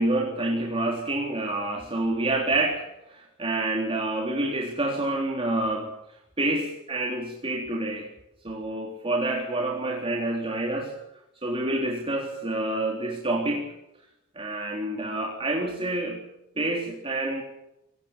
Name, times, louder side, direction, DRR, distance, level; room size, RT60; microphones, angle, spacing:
voice 1, 0.0-2.8 3.1-5.9 6.4-8.1 8.4-10.9 11.4-13.7 14.4-16.2 16.6-17.4, right 2 dB, 25° right, -1 dB, 3.7 m, -27 dB
28.0 x 17.0 x 7.5 m, 0.87 s
head